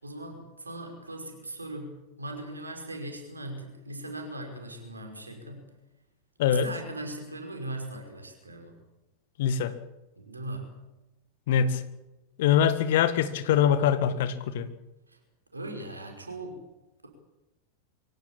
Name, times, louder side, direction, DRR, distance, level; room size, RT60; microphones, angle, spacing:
voice 1, 0.0-5.7 6.4-8.8 10.2-10.7 15.1-15.2 15.5-16.6, right 1 dB, 80° right, 4 dB, 5.3 m, -39 dB
voice 2, 9.4-9.7 11.5-11.8 12.4-14.7, left 8 dB, 55° left, 12 dB, 1.8 m, -23 dB
23.5 x 16.5 x 8.6 m, 1.0 s
figure-of-eight pair, 90°, 0 cm